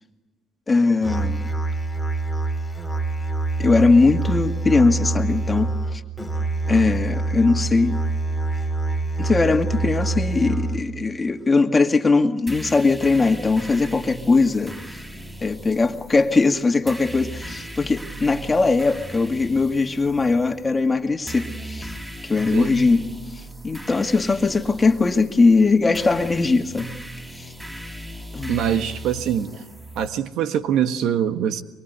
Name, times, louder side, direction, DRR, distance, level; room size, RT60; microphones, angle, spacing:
voice 1, 0.7-1.5 3.6-6.0 6.7-8.0 9.2-15.0 15.4-21.9 22.2-23.1 23.3-26.9 27.4-27.5 28.3-28.6, left 3 dB, 25° left, 2.1 m, -20 dB
Musical instrument, 1.0-11.0, right 3 dB, 5° left, 2.6 m, -25 dB
sound 1, 12.5-30.1, right 1 dB, 15° right, 6.7 m, -38 dB
voice 2, 22.5-22.9 28.5-29.6 29.9-31.6, right 9 dB, 75° right, 1.4 m, -24 dB
24.0 x 23.5 x 8.2 m
cardioid pair, 85°, 0 cm